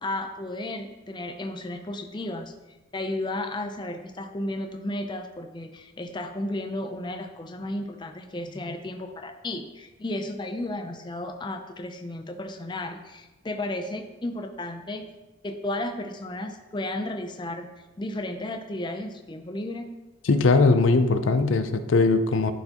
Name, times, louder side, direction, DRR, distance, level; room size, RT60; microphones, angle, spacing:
voice 1, 0.0-2.5 2.9-15.0 15.4-17.7 18.0-19.9, left 1 dB, 20° left, 5 dB, 0.4 m, -33 dB
voice 2, 20.3-22.5, left 3 dB, 75° left, 10 dB, 0.5 m, -20 dB
11.5 x 4.6 x 2.9 m, 1.1 s
head